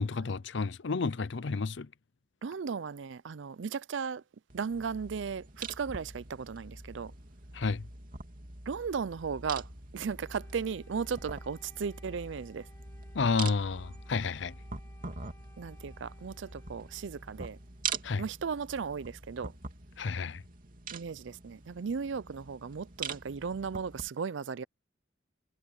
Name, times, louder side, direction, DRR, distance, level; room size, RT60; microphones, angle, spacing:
voice 1, 0.0-1.9 7.5-7.9 13.1-14.6 18.0-18.2 20.0-20.4, left 4 dB, 65° left, 0.6 m, -31 dB
voice 2, 2.4-4.2 4.5-7.1 8.7-9.7 9.9-12.7 15.6-17.6 18.2-19.5 20.9-24.6, right 6 dB, 70° right, 0.5 m, -36 dB
sound 1, 4.5-24.1, right 5 dB, 45° right, 2.8 m, -44 dB
Wind instrument woodwind instrument, 10.1-17.9, left 1 dB, 15° left, 2.3 m, -62 dB
head